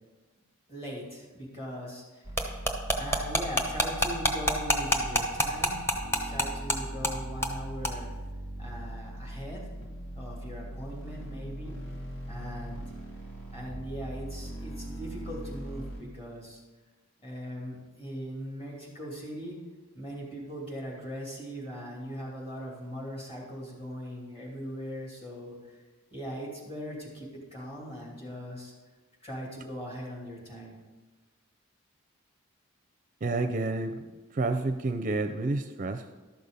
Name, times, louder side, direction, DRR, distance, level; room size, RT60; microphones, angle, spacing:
voice 1, 0.7-2.3 3.0-5.8 6.2-8.1 8.6-9.6 10.1-12.0 12.3-12.8 13.5-16.6 17.2-19.6 19.9-25.6 26.1-28.7 29.2-30.8, equal, 25° left, -2 dB, 2.9 m, -40 dB
sound 1, 2.2-16.0, right 1 dB, 75° left, 2.6 m, -40 dB
sound 2, 2.4-6.8 7.0-7.1 7.4-7.6 7.8-7.9, equal, 10° left, 1.0 m, -26 dB
voice 2, 33.2-34.0 34.3-36.1, right 2 dB, 40° right, 8 dB, 0.5 m, -29 dB
12.0 x 6.6 x 5.5 m, 1.3 s
head